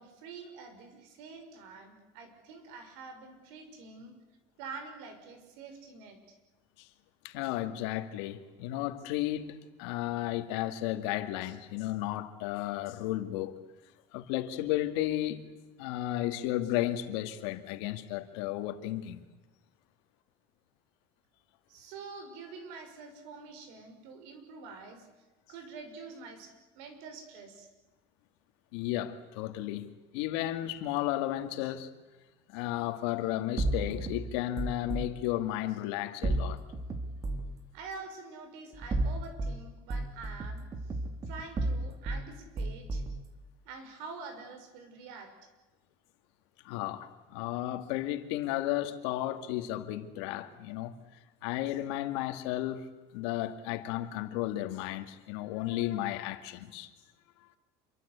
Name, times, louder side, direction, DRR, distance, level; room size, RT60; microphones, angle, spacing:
voice 1, 0.0-4.1 4.6-6.2 21.7-25.1 25.5-27.7 37.7-40.7 41.3-43.0 43.6-45.3, right 4 dB, 80° right, 6.2 m, -46 dB
voice 2, 7.2-13.6 14.1-15.4 15.8-19.2 28.7-31.9 32.5-36.6 46.6-51.0 51.4-56.9, left 14 dB, 85° left, 2.3 m, -33 dB
sound 1, 33.6-35.1 36.2-37.5 38.7-39.6 39.9-42.2 42.6-43.2, right 2 dB, 25° right, 2.3 m, -32 dB
27.0 x 24.5 x 8.4 m
cardioid pair, 160°, 14 cm